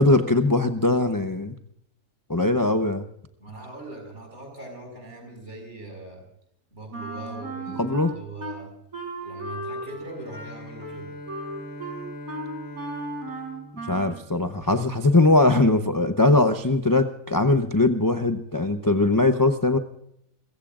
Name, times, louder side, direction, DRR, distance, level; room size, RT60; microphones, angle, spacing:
voice 1, 0.0-1.6 2.3-3.0 7.8-8.1 13.9-19.8, left 2 dB, 20° left, 7 dB, 0.6 m, -20 dB
voice 2, 3.4-6.2 6.7-8.8 9.2-11.1, right 2 dB, 55° right, 3 dB, 5.8 m, -40 dB
Wind instrument woodwind instrument, 6.9-8.6 8.9-14.3, right 2 dB, 85° right, 4.6 m, -36 dB
Bowed string instrument, 10.0-14.8, left 1 dB, 70° left, 2.2 m, -42 dB
29.0 x 16.0 x 2.5 m, 0.73 s
omnidirectional pair, 1.5 m